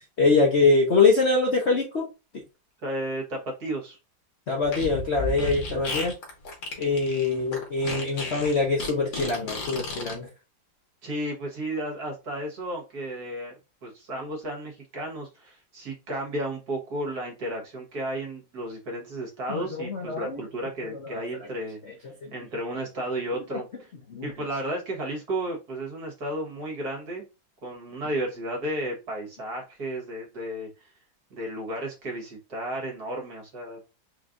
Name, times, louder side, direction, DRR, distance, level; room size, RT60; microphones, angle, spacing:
voice 1, 0.2-2.1 4.5-6.1 6.8-10.3 19.5-20.4 22.2-22.3 23.5-23.6 24.1-24.3, left 3 dB, 50° left, 0.9 m, -23 dB
voice 2, 2.8-4.0 11.0-21.8 22.3-23.9 24.2-27.3 27.6-30.9 31.3-33.8, right 1 dB, 55° right, 1.9 m, -33 dB
Fart, 4.6-10.1, left 2 dB, 75° left, 2.0 m, -33 dB
4.4 x 3.2 x 2.5 m
omnidirectional pair, 2.1 m